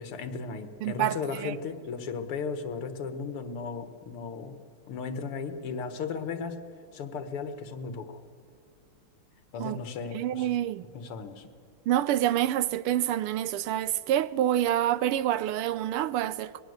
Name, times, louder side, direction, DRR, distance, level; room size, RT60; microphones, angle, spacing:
voice 1, 0.0-4.6 4.9-6.6 6.9-8.2 9.5-10.5 10.9-11.5, left 5 dB, 85° left, 2.4 m, -36 dB
voice 2, 0.8-1.5 9.6-9.8 10.1-10.8 11.9-16.6, right 12 dB, 90° right, 1.7 m, -27 dB
24.5 x 20.5 x 8.0 m
omnidirectional pair, 2.4 m